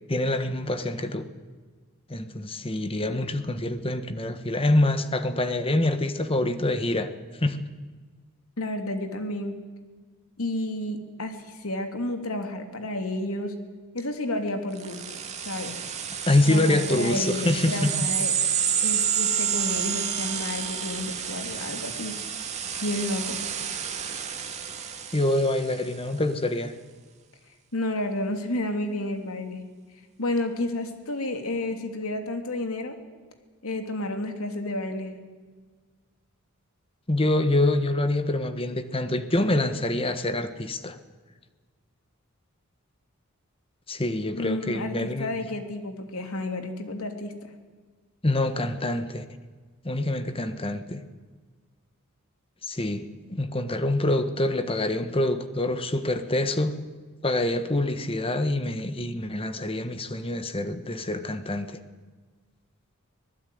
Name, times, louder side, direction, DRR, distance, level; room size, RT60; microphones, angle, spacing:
voice 1, 0.1-1.3 2.1-7.1 7.4-7.6 16.3-17.9 25.1-26.7 37.1-41.0 43.9-45.3 48.2-49.2 49.8-51.0 52.6-56.7 57.2-61.8, left 1 dB, 25° left, 10 dB, 1.4 m, -26 dB
voice 2, 8.6-9.6 10.4-13.6 13.9-15.2 15.4-15.8 16.5-18.3 18.8-22.2 22.8-23.4 27.7-29.6 30.2-33.0 33.6-35.1 44.3-47.5, left 1 dB, 75° left, 6 dB, 3.2 m, -31 dB
sound 1, 14.8-25.9, right 8 dB, 30° right, 2.5 m, -30 dB
25.0 x 18.5 x 9.5 m, 1.4 s
head